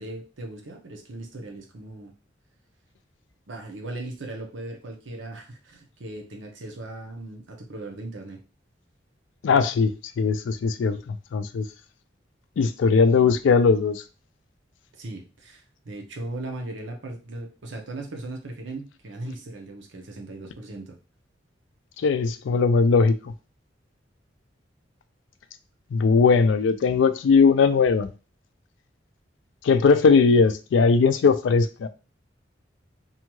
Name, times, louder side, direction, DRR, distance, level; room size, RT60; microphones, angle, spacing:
voice 1, 0.0-2.1 3.5-8.4 14.9-21.0, right 2 dB, 80° right, 0.7 m, -38 dB
voice 2, 9.4-11.7 12.6-14.0 22.0-23.3 25.9-28.1 29.6-31.9, left 5 dB, 80° left, 0.3 m, -19 dB
2.7 x 2.3 x 3.0 m
head